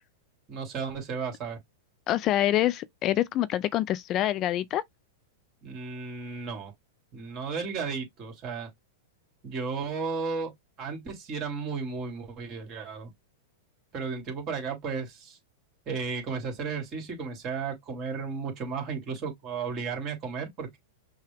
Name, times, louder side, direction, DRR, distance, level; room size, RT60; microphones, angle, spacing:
voice 1, 0.5-1.6 5.6-6.7 7.1-8.7 9.4-10.5 10.8-13.1 13.9-15.4 15.9-20.8, right 5 dB, 35° right, 2.3 m, -34 dB
voice 2, 2.1-4.8, left 13 dB, 40° left, 0.4 m, -26 dB
5.7 x 2.3 x 3.4 m
hypercardioid pair, 115°, 0 cm